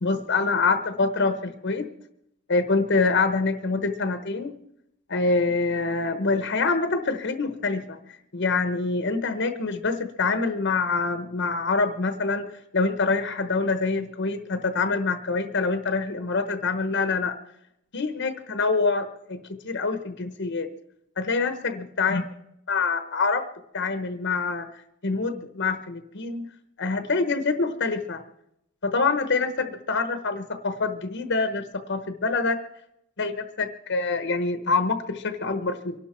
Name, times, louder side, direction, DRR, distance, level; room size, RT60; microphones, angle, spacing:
voice 1, 0.0-1.9 2.5-4.6 5.1-8.0 8.3-17.4 17.9-20.7 21.2-22.2 22.7-23.4 23.7-24.7 25.0-26.4 26.8-28.2 28.8-32.6 33.2-36.0, left 4 dB, 55° left, 8 dB, 1.0 m, -25 dB
24.0 x 12.0 x 4.4 m, 0.81 s
head